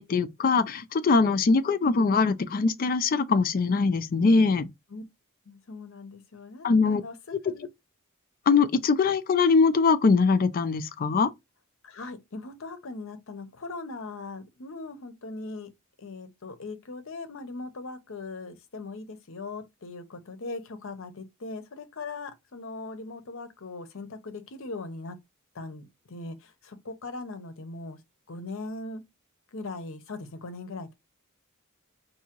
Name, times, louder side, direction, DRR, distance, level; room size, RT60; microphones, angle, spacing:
voice 1, 0.0-4.7 6.6-7.0 8.5-11.3, left 4 dB, 40° left, 0.4 m, -22 dB
voice 2, 5.5-7.7 11.8-15.7 16.0-25.2 25.5-28.0 28.3-29.0 29.5-30.9, left 3 dB, 65° left, 0.7 m, -40 dB
4.7 x 2.7 x 2.9 m
head